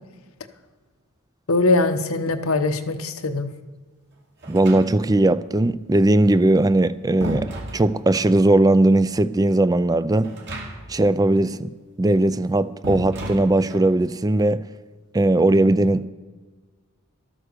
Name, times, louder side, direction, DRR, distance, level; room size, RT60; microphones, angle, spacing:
voice 1, 1.5-3.5, left 2 dB, 75° left, 1.0 m, -21 dB
sound 1, 4.4-5.3 6.5-8.4 10.2-11.1 11.3-11.4 12.8-14.0, right 1 dB, 55° right, 2.5 m, -33 dB
voice 2, 4.5-7.5 7.7-10.3 10.9-11.7 12.0-14.6 15.1-16.1, right 2 dB, 15° right, 0.4 m, -18 dB
13.0 x 9.0 x 6.8 m
head